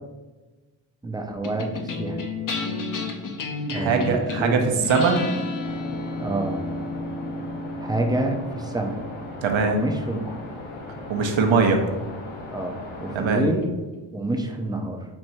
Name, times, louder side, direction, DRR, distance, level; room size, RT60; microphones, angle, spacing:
voice 1, 1.0-2.2 3.7-4.8 6.2-6.6 7.8-9.0 9.6-10.5 12.5-13.8 14.1-15.0, right 2 dB, 10° right, 3 dB, 0.5 m, -27 dB
sound 1, 1.4-12.0, left 3 dB, 40° left, 0.6 m, -33 dB
voice 2, 3.7-4.6 4.9-5.2 9.4-9.8 11.1-11.8 13.1-13.4, right 5 dB, 70° right, 4 dB, 0.8 m, -21 dB
sound 2, 5.6-13.2, left 2 dB, 80° left, 1.0 m, -38 dB
4.5 x 2.6 x 4.4 m, 1.2 s
cardioid pair, 75°, 47 cm